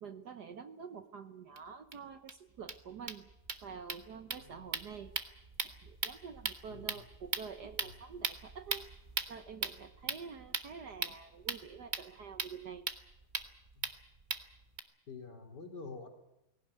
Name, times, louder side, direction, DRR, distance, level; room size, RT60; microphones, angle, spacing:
voice 1, 0.0-3.3 3.6-5.1 5.8-8.9 9.3-12.8, right 6 dB, 60° right, 9 dB, 1.4 m, -47 dB
sound 1, 1.6-1.7 1.9-2.0 2.3-2.4 2.6-14.8, right 4 dB, 30° right, 1.1 m, -40 dB
voice 2, 6.7-7.0 10.0-10.1 13.8-13.9 15.1-16.1, left 4 dB, 50° left, 5 dB, 3.4 m, -48 dB
19.5 x 17.5 x 9.4 m, 0.88 s
omnidirectional pair, 2.3 m